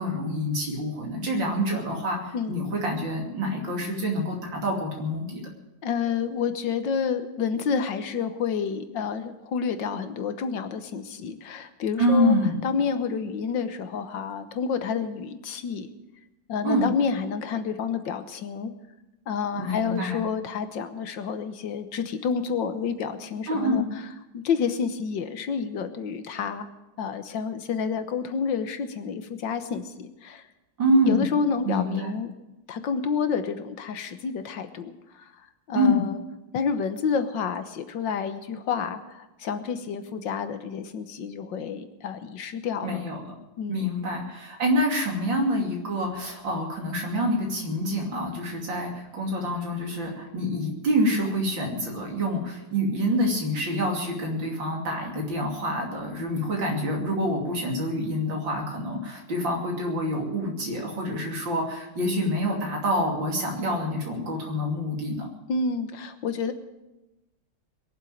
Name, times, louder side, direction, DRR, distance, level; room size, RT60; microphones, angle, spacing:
voice 1, 0.0-5.5 12.0-12.6 16.6-16.9 19.6-20.2 23.5-23.8 30.8-31.2 31.6-32.1 35.7-36.0 42.8-43.2 43.7-65.3, equal, 75° right, 0 dB, 3.5 m, -26 dB
voice 2, 5.8-12.4 12.6-15.9 16.5-18.7 19.3-23.8 24.3-26.7 27.0-30.4 31.0-32.3 32.7-35.3 35.7-36.2 36.5-43.0 43.6-43.9 65.5-66.5, left 6 dB, 75° left, 9 dB, 1.8 m, -29 dB
21.5 x 7.5 x 8.9 m, 1.0 s
omnidirectional pair, 2.1 m